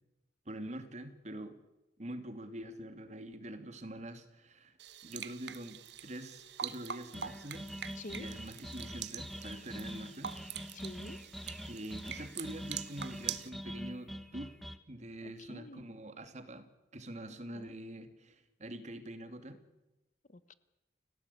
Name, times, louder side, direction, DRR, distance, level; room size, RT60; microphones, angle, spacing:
voice 1, 0.5-1.6 2.0-4.8 5.0-7.7 8.1-10.3 11.7-14.5 14.9-19.6, right 1 dB, 40° right, 8 dB, 2.6 m, -45 dB
sound 1, 4.8-13.5, right 9 dB, 75° right, 1.2 m, -44 dB
sound 2, 7.1-14.8, equal, ahead, 1.5 m, -44 dB
voice 2, 8.0-8.3 10.7-11.2 15.2-15.8 17.5-17.7 20.3-20.5, left 2 dB, 45° left, 15 dB, 1.0 m, -47 dB
29.5 x 17.5 x 8.5 m, 1.0 s
head